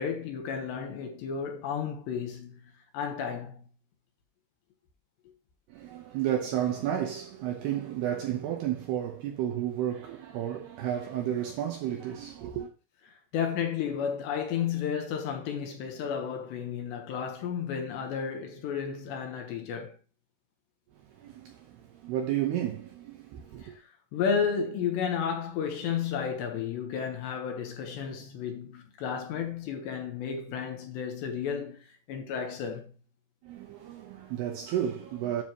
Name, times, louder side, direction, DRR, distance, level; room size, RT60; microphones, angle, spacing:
voice 1, 0.0-2.6 2.9-3.7 13.3-20.0 23.6-23.7 24.1-32.9, left 7 dB, 70° left, 3.0 m, -32 dB
voice 2, 5.7-12.7 21.2-23.7 33.4-35.4, right 10 dB, 75° right, 2.5 m, -32 dB
9.7 x 6.8 x 3.0 m
omnidirectional pair, 5.6 m